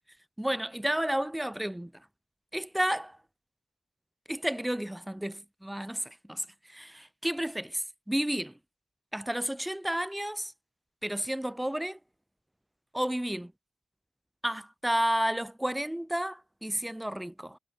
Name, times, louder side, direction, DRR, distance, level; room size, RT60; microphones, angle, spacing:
voice 1, 0.4-1.9 2.5-3.2 4.3-8.5 9.1-10.5 11.0-12.0 12.9-13.5 14.4-17.6, right 1 dB, 5° right, 4.1 m, -31 dB
cardioid pair, 75°, 0 cm